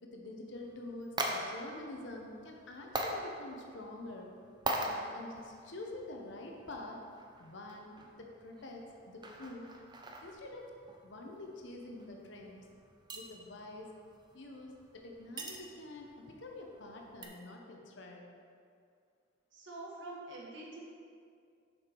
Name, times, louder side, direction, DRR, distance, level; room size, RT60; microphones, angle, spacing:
voice 1, 0.0-4.3 4.7-7.0 7.4-7.9 8.2-9.7 10.2-10.6 11.0-12.6 13.1-13.9 14.3-18.2, left 2 dB, 65° left, 1 dB, 0.8 m, -47 dB
sound 1, 0.5-17.3, right 1 dB, 20° right, 0.5 m, -44 dB
voice 2, 19.5-20.8, right 2 dB, 70° right, -4 dB, 1.6 m, -46 dB
6.7 x 5.7 x 4.5 m, 2.3 s
head